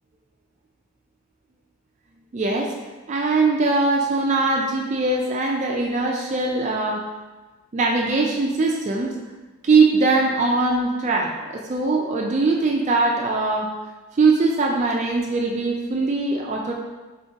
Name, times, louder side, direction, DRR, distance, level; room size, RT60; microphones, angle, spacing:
voice 1, 2.3-2.7 3.1-7.0 7.7-9.1 9.6-13.7 14.2-16.7, right 3 dB, 30° right, 0 dB, 0.3 m, -21 dB
4.5 x 3.7 x 2.8 m, 1.2 s
head